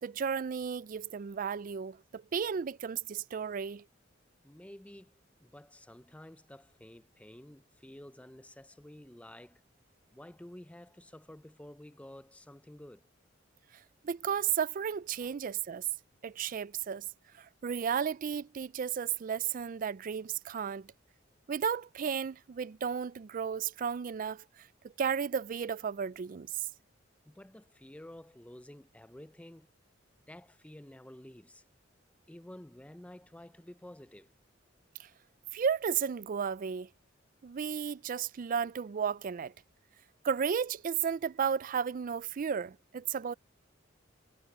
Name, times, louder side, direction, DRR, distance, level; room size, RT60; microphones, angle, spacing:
voice 1, 0.0-3.8 14.0-15.9 16.2-17.1 17.3-20.9 21.5-24.7 25.0-26.7 35.0-35.1 35.5-36.9 37.4-39.5 40.2-43.3, right 7 dB, 45° right, 0.4 m, -33 dB
voice 2, 4.4-9.6 10.1-13.1 15.2-15.4 27.2-29.7 30.3-31.6 32.3-34.3, left 1 dB, 5° left, 0.6 m, -51 dB
head